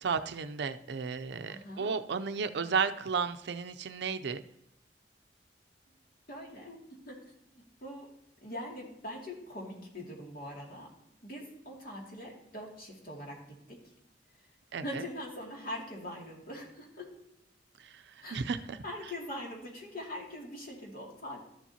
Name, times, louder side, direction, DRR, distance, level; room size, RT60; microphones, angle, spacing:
voice 1, 0.0-4.4 14.7-15.0 17.8-18.0 18.3-18.8, right 5 dB, 70° right, 10 dB, 0.5 m, -33 dB
voice 2, 1.5-1.9 6.3-6.8 7.1-7.2 7.5-8.1 8.4-10.9 11.2-13.8 14.8-17.2 18.2-18.4 18.8-21.4, left 1 dB, 55° left, -2 dB, 2.4 m, -42 dB
13.0 x 7.3 x 2.8 m, 0.81 s
head